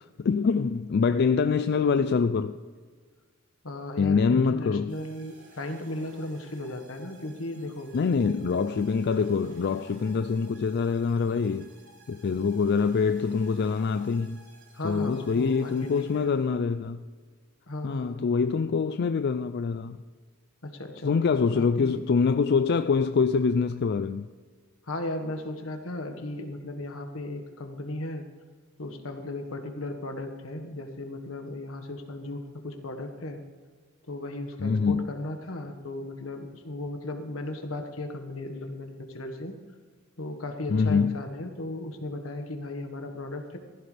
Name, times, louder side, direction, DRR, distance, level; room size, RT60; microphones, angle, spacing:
voice 1, 0.2-2.6 4.0-4.9 7.9-11.7 12.1-14.4 14.8-17.0 17.8-20.0 21.0-24.3 34.6-35.1 40.7-41.2, left 5 dB, 55° left, 0.4 m, -25 dB
voice 2, 3.6-7.9 14.7-16.3 17.7-18.2 20.6-22.0 24.9-28.2 28.8-33.4 34.1-39.5 40.2-43.6, left 1 dB, 80° left, 1.6 m, -36 dB
sound 1, 4.9-16.7, right 2 dB, 65° right, 2.9 m, -56 dB
15.5 x 15.0 x 3.4 m
head